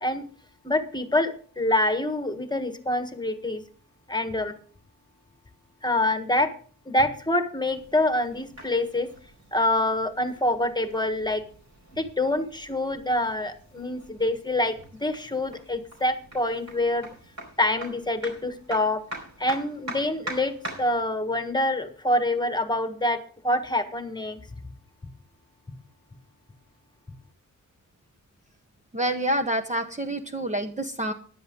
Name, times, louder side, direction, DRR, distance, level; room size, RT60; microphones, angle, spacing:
voice 1, 0.6-3.6 4.1-4.5 5.8-6.5 6.9-9.1 9.5-11.4 12.0-17.1 17.6-19.0 19.4-20.5 20.8-24.4, left 1 dB, 15° left, 8 dB, 1.4 m, -26 dB
sound 1, 7.7-21.0, right 1 dB, 55° right, 4.5 m, -44 dB
voice 2, 28.9-31.1, right 1 dB, 20° right, 5 dB, 0.9 m, -27 dB
15.0 x 11.0 x 3.8 m, 0.43 s
wide cardioid pair, 120°, 32 cm